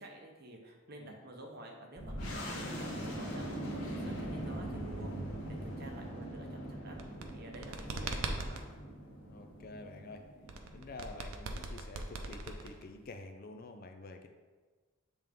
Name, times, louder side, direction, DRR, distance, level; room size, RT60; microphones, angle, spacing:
voice 1, 0.0-5.2 5.5-7.0 7.3-8.6, right 1 dB, 45° right, 1 dB, 0.8 m, -50 dB
sound 1, 2.0-11.2, equal, 85° left, 1.5 m, -41 dB
sound 2, 6.9-8.7 10.5-13.0, right 3 dB, 75° right, 0.6 m, -40 dB
voice 2, 7.8-8.2 9.3-10.2 10.7-14.3, left 2 dB, 45° left, 6 dB, 0.4 m, -48 dB
7.4 x 3.5 x 3.6 m, 1.4 s
head